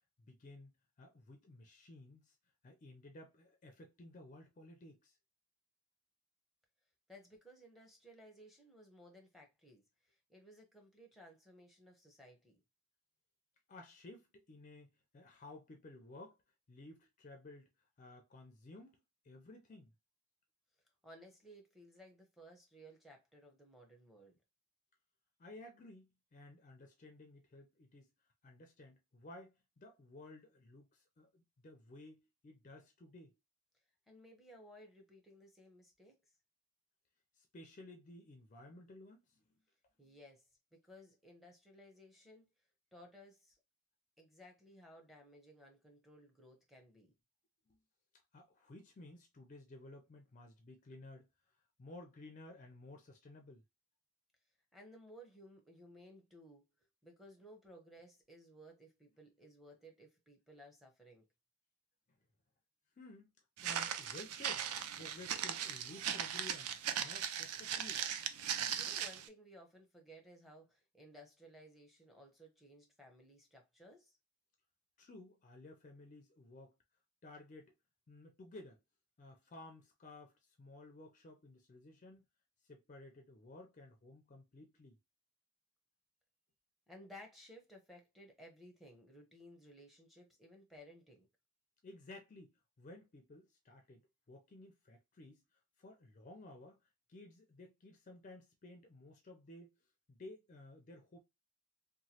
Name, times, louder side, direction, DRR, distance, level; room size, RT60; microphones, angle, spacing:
voice 1, 0.2-0.7 1.0-2.4 2.6-5.2 13.7-16.4 16.7-17.7 18.0-19.0 19.2-19.9 25.4-28.1 28.4-33.3 37.3-39.4 47.7-47.8 48.3-51.3 51.8-53.6 63.0-63.3 63.6-64.7 65.0-66.7 67.0-68.0 75.0-76.7 77.2-77.7 78.1-78.8 79.2-82.3 82.7-85.0 91.8-96.8 97.1-99.7 100.1-101.2, left 2 dB, 35° left, 0.4 m, -55 dB
voice 2, 7.1-9.8 10.1-12.6 21.0-24.4 34.1-36.1 40.0-40.4 40.7-42.5 42.9-43.6 44.2-47.1 54.7-56.6 57.0-61.3 68.4-74.2 86.9-91.3, equal, ahead, 0.6 m, -58 dB
Walk footsteps, 63.6-69.3, right 9 dB, 85° right, 0.4 m, -39 dB
3.0 x 2.2 x 2.7 m
head